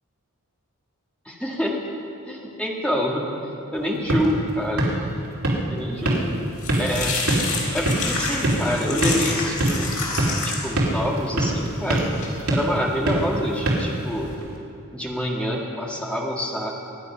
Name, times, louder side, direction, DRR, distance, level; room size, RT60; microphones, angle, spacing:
voice 1, 1.3-1.8 2.2-3.3 3.7-4.9 5.7-6.4 6.8-7.2 7.7-9.9 10.1-12.1 12.5-14.3 14.9-16.7, equal, 5° left, -2 dB, 1.8 m, -27 dB
sound 1, 3.7-14.6, right 1 dB, 80° right, 2.9 m, -26 dB
sound 2, 6.1-14.3, left 3 dB, 85° left, 4.0 m, -30 dB
25.0 x 9.6 x 5.7 m, 2.7 s
head